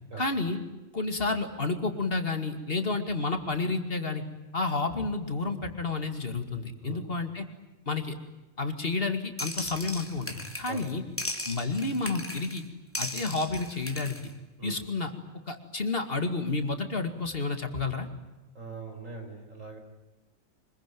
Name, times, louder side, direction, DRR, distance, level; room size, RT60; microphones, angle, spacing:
voice 1, 0.2-0.6 0.9-4.2 4.5-7.5 7.9-8.2 8.6-11.0 11.5-12.6 13.0-14.2 14.6-15.1 15.5-18.1, left 3 dB, 45° left, 6 dB, 2.6 m, -30 dB
sound 1, 9.4-10.9 11.2-12.6 12.9-14.3, left 1 dB, 10° left, 2.9 m, -37 dB
voice 2, 18.6-19.8, right 4 dB, 75° right, 4 dB, 5.4 m, -41 dB
25.0 x 22.5 x 9.3 m, 1.1 s
omnidirectional pair, 1.4 m